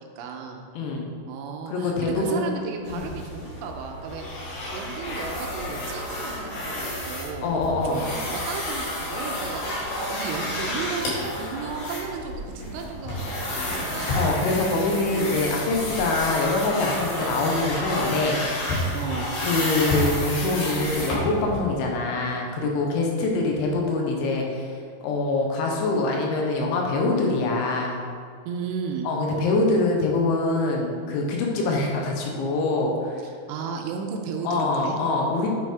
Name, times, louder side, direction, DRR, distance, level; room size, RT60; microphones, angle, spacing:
voice 1, 0.0-0.6 1.3-7.6 7.8-14.2 15.1-15.5 18.9-19.3 28.5-29.1 33.2-35.0, right 6 dB, 80° right, 2 dB, 3.1 m, -34 dB
voice 2, 0.8-1.1 1.7-2.5 2.9-3.1 7.4-8.0 14.2-18.4 19.4-24.7 25.0-28.0 29.0-33.2 34.4-35.5, left 2 dB, 75° left, 0 dB, 3.1 m, -24 dB
sound 1, 2.8-21.6, left 1 dB, 55° left, 3.4 m, -30 dB
9.2 x 6.1 x 3.5 m, 2.2 s
omnidirectional pair, 5.7 m